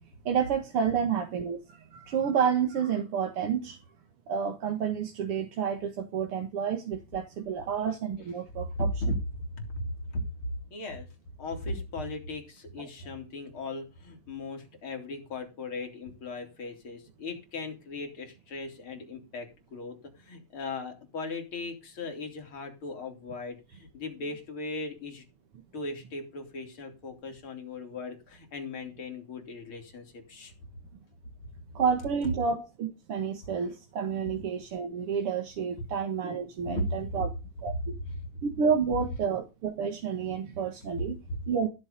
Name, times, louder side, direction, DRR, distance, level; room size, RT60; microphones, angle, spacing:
voice 1, 0.3-1.6 1.9-3.8 4.3-8.9 31.8-37.3 37.6-37.7 38.4-41.2 41.5-41.7, right 7 dB, 50° right, 2.3 m, -29 dB
voice 2, 8.6-9.8 10.1-11.1 11.4-25.2 25.7-30.5 36.6-37.2 37.8-38.4 41.0-41.4, left 2 dB, 45° left, 4.3 m, -37 dB
15.5 x 7.6 x 5.3 m
omnidirectional pair, 3.4 m